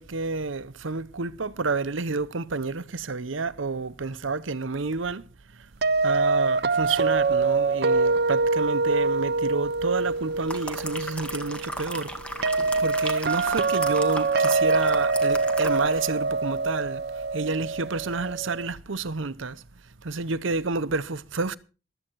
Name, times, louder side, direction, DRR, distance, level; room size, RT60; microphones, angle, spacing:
voice 1, 0.0-5.7 6.0-19.6 20.0-21.6, right 4 dB, 85° right, 0.9 m, -30 dB
sound 1, 5.8-18.7, right 3 dB, 55° right, 0.6 m, -25 dB
sound 2, 10.2-16.2 16.5-16.7, equal, 5° left, 1.8 m, -37 dB
15.5 x 13.0 x 4.6 m
head